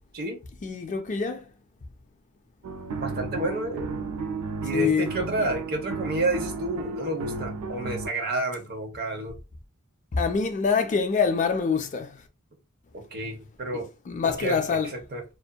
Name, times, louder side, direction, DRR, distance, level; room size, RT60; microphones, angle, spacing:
voice 1, 0.6-1.4 4.7-5.1 10.1-12.2 13.7-14.9, left 5 dB, 35° left, 0.4 m, -25 dB
sound 1, 2.6-8.1, right 3 dB, 85° right, 0.4 m, -34 dB
voice 2, 3.0-3.9 4.6-9.4 12.9-13.9 14.2-15.2, right 2 dB, 45° right, 0.8 m, -30 dB
2.5 x 2.4 x 2.2 m
head